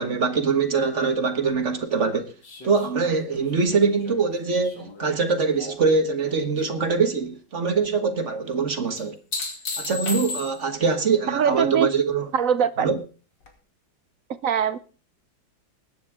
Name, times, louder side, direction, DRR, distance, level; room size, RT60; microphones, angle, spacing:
voice 1, 0.0-2.3 2.6-9.2 9.8-12.3 12.8-13.0, right 4 dB, 40° right, 1.5 m, -23 dB
sound 1, 2.4-5.9 6.3-6.9 9.0-10.9 13.4-13.5, left 3 dB, 65° left, 3.1 m, -35 dB
voice 2, 11.3-11.9 12.3-12.9 14.4-14.8, right 8 dB, 60° right, 0.9 m, -22 dB
20.5 x 9.7 x 3.6 m
omnidirectional pair, 2.1 m